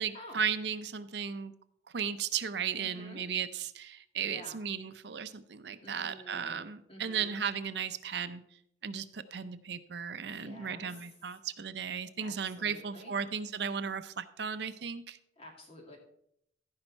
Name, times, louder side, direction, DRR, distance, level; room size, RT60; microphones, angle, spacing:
voice 1, 0.0-1.5 1.9-8.4 8.8-15.2, right 7 dB, 60° right, 12 dB, 0.6 m, -35 dB
voice 2, 2.8-3.2 4.2-4.6 5.8-7.4 10.3-11.1 12.2-13.1 15.4-16.0, left 1 dB, 30° left, 1 dB, 2.1 m, -50 dB
14.5 x 5.4 x 4.5 m, 0.73 s
head